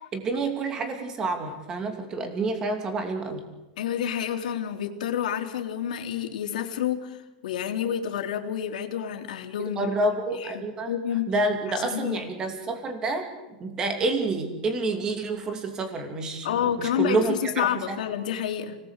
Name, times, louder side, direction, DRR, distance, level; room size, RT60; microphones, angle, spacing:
voice 1, 0.0-3.4 9.6-10.9 11.3-13.3 13.6-17.4 17.9-18.0, right 2 dB, 15° right, 6 dB, 2.8 m, -28 dB
voice 2, 3.8-9.9 10.3-11.3 11.7-12.2 16.4-18.8, left 9 dB, 85° left, 4 dB, 3.7 m, -29 dB
30.0 x 19.5 x 8.4 m, 1.1 s
supercardioid pair, 180°, 4 cm